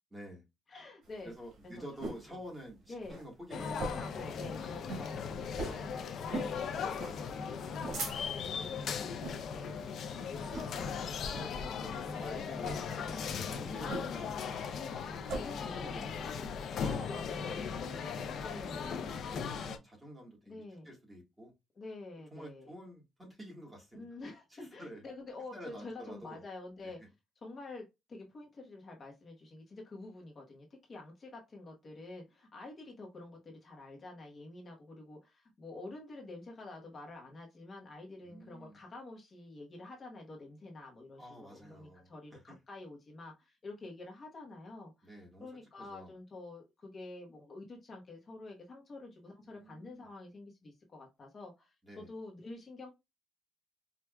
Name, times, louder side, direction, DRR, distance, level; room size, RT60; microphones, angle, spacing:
voice 1, 0.1-0.4 1.2-4.2 10.0-10.3 10.7-10.9 11.3-12.9 13.3-14.9 15.6-16.5 16.8-17.0 17.4-18.0 19.3-21.5 22.3-24.1 24.8-25.0 25.5-26.4 26.8-26.9 38.2-38.8 41.2-42.4 45.0-45.5 45.8-46.1 49.5-50.1 51.8-52.1, equal, 10° right, -1 dB, 1.5 m, -49 dB
voice 2, 0.7-1.3 1.8-1.9 2.3-2.4 2.9-3.2 3.6-9.3 10.8-11.3 12.0-12.3 12.9-13.2 13.6-13.8 15.4-16.3 16.8-19.5 20.5-20.9 21.7-22.7 24.0-27.0 27.4-52.9, left 2 dB, 35° left, 0 dB, 0.9 m, -48 dB
sound 1, 1.1-2.3 2.7-2.8 3.0-3.3 3.7-4.2 4.5-4.6 4.8-5.1 5.5-5.8 6.3-6.6 7.0-7.2 7.6-8.5 9.1-9.4 9.8-10.1 10.5-10.9 11.3-11.5 12.5-12.8 13.9-14.3 14.6-15.4, right 2 dB, 75° right, 1.4 m, -40 dB
sound 2, 3.5-19.8, left 6 dB, 60° left, 0.5 m, -38 dB
4.6 x 2.5 x 2.2 m, 0.22 s
cardioid pair, 140°, 0 cm